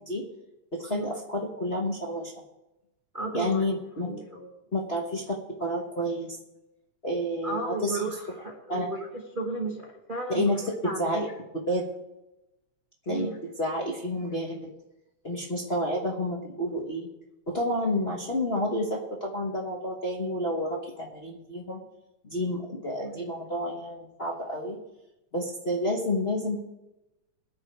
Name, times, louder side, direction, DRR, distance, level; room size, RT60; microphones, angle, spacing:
voice 1, 0.7-2.3 3.3-4.1 4.7-5.2 5.6-6.4 7.0-8.0 8.7-8.9 10.3-10.6 11.0-11.3 11.7-11.9 13.1-13.3 13.6-14.7 15.2-17.1 17.5-21.8 22.2-24.8 25.3-26.6, left 1 dB, 50° left, -2 dB, 0.7 m, -29 dB
voice 2, 3.1-3.6 4.0-4.5 7.4-11.3 13.1-13.4 23.0-23.3, right 2 dB, 40° right, -1 dB, 0.7 m, -34 dB
22.0 x 7.4 x 4.6 m, 0.97 s
omnidirectional pair, 3.3 m